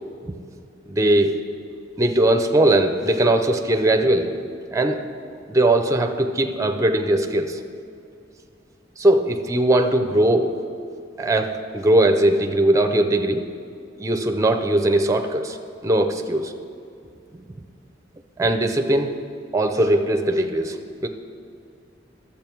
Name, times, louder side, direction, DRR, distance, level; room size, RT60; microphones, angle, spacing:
voice 1, 0.9-1.4 2.0-4.3 4.7-5.0 5.5-7.6 9.0-10.5 11.2-13.4 14.0-15.6 15.8-16.5 17.3-17.4 18.4-19.2 19.5-20.8 21.0-21.1, right 1 dB, 15° right, 6 dB, 0.6 m, -20 dB
12.0 x 7.5 x 4.5 m, 2.5 s
head